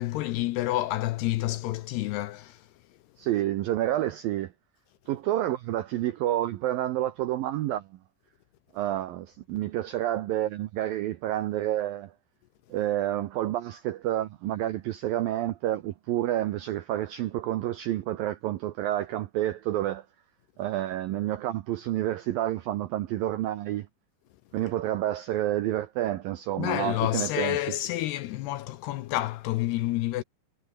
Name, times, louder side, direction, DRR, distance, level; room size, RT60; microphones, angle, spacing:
voice 1, 0.0-2.7 26.6-30.2, left 15 dB, 75° left, 2.5 m, -29 dB
voice 2, 3.2-4.5 5.1-7.9 8.7-12.1 12.7-20.1 20.6-23.9 24.5-27.6, right 13 dB, 85° right, 2.1 m, -29 dB
omnidirectional pair, 5.4 m